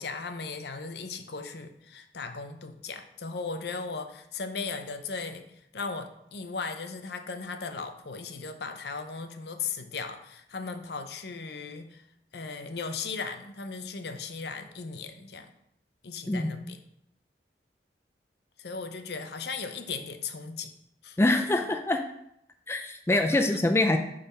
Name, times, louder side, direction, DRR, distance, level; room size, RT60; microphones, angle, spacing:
voice 1, 0.0-5.4 5.7-12.0 12.3-15.5 16.0-16.8 18.6-20.7 21.0-21.2 23.3-23.4, left 4 dB, 65° left, 7 dB, 0.7 m, -37 dB
voice 2, 16.3-16.7 21.2-22.0 22.7-24.0, left 2 dB, 15° left, 5 dB, 0.4 m, -25 dB
7.0 x 4.0 x 5.5 m, 0.77 s
head